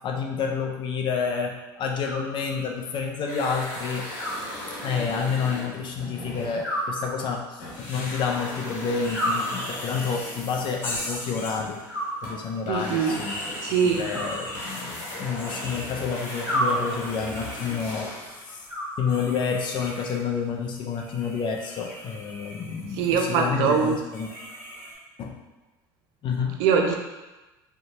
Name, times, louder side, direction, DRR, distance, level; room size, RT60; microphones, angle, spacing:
voice 1, 0.0-4.1 4.8-11.8 12.2-13.3 13.8-18.6 19.0-24.3 25.2-25.4 26.2-26.6, left 6 dB, 45° left, 1 dB, 0.4 m, -29 dB
Animal, 2.0-2.9 4.2-5.2 6.6-7.7 9.1-10.1 11.9-12.8 14.1-15.2 16.5-17.4 18.7-19.6, right 1 dB, 15° right, 1.0 m, -32 dB
sound 1, 3.2-7.3 7.6-18.4, left 1 dB, 70° left, 1.1 m, -38 dB
sound 2, 9.0-10.3 10.8-12.0 12.8-14.8 15.4-20.2 20.7-25.0, left 1 dB, 20° left, 0.9 m, -40 dB
voice 2, 12.7-13.2 13.6-14.0 23.0-24.0 26.6-27.0, right 6 dB, 75° right, 3 dB, 0.4 m, -22 dB
2.7 x 2.2 x 2.9 m, 1.1 s
supercardioid pair, 95°, 11 cm